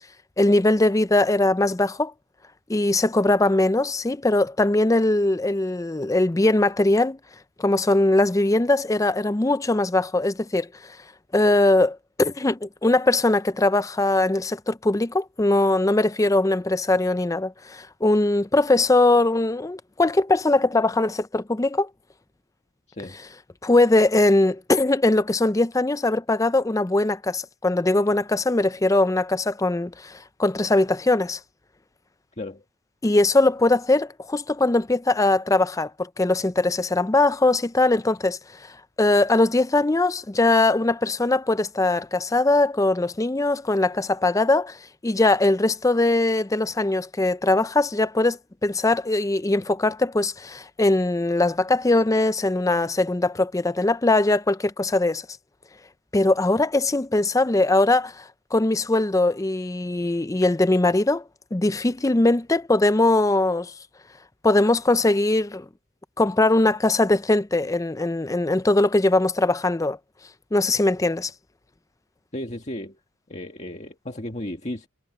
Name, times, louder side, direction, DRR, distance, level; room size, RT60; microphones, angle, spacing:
voice 1, 0.4-2.1 2.7-7.2 7.6-10.7 11.3-21.9 23.6-31.4 33.0-38.4 39.0-44.8 45.0-55.2 56.1-58.2 58.5-61.2 61.5-63.7 64.4-65.7 66.2-70.0 70.5-71.3, left 2 dB, 15° left, 0.4 m, -21 dB
voice 2, 72.3-73.0 73.3-74.9, left 1 dB, 30° left, 1.7 m, -34 dB
head